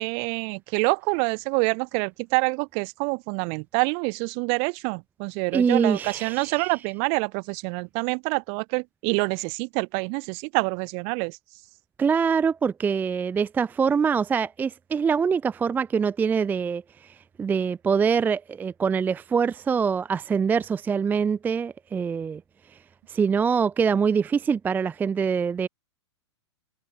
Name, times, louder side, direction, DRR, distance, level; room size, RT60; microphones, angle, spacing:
voice 1, 0.0-11.4, right 40 dB or more, 40° right, 1.2 m, -26 dB
voice 2, 5.5-6.8 12.0-22.4 22.7-22.8 23.1-25.7, right 6 dB, 10° right, 0.4 m, -24 dB
hypercardioid pair, 110°, 15 cm